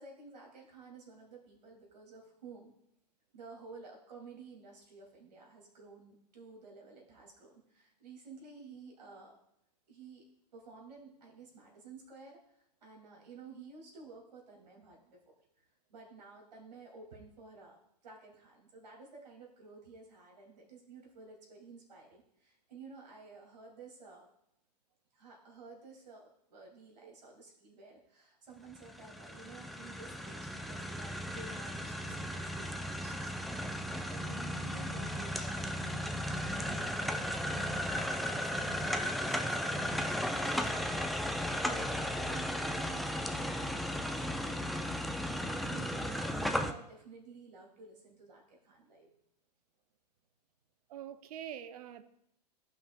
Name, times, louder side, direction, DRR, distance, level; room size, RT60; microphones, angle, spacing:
voice 1, 0.0-2.7 3.3-9.4 9.9-10.2 10.5-12.5 12.8-15.2 15.6-24.3 25.1-40.9 41.6-44.9 45.3-49.1, right 4 dB, 80° right, -1 dB, 2.4 m, -53 dB
sound 1, 28.7-46.7, equal, ahead, 0.3 m, -35 dB
voice 2, 50.9-52.0, right 10 dB, 60° right, 11 dB, 0.6 m, -44 dB
14.5 x 5.7 x 2.2 m, 0.76 s
hypercardioid pair, 110°, 21 cm